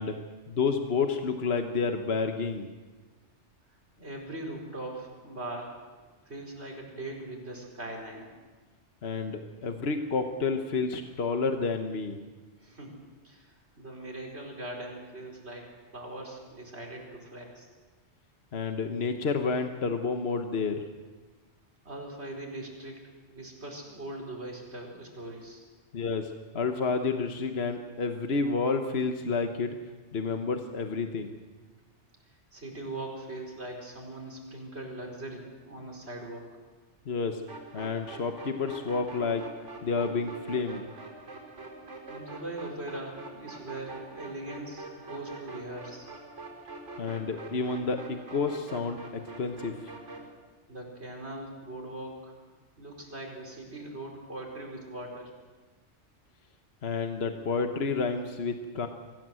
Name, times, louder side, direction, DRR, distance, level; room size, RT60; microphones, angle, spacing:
voice 1, 0.0-2.7 9.0-12.2 18.5-20.9 25.9-29.8 30.1-31.3 37.1-37.4 37.7-39.5 39.8-40.9 47.0-49.9 56.8-58.9, left 4 dB, 60° left, 5 dB, 1.4 m, -30 dB
voice 2, 4.0-8.3 12.6-12.9 13.2-17.7 21.8-23.0 23.3-25.6 32.5-36.5 42.1-46.1 50.7-52.3 52.8-55.3, right 1 dB, 65° right, 0 dB, 5.0 m, -41 dB
sound 1, 37.5-50.3, right 3 dB, 85° right, 5.4 m, -44 dB
24.5 x 15.5 x 7.7 m, 1.3 s
omnidirectional pair, 1.2 m